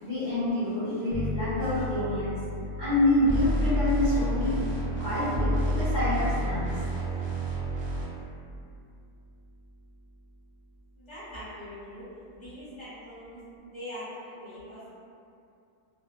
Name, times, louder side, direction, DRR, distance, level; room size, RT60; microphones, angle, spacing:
voice 1, 0.0-2.4 2.8-4.6 5.0-6.7, left 1 dB, 10° left, -16 dB, 1.0 m, -27 dB
sound 1, 1.1-10.4, left 2 dB, 85° right, 0.3 m, -40 dB
sound 2, 3.2-8.0, equal, 55° right, 0.6 m, -28 dB
voice 2, 11.0-12.1 12.3-15.0, equal, 30° left, -13 dB, 0.6 m, -42 dB
2.6 x 2.1 x 2.4 m, 2.5 s
omnidirectional pair, 1.4 m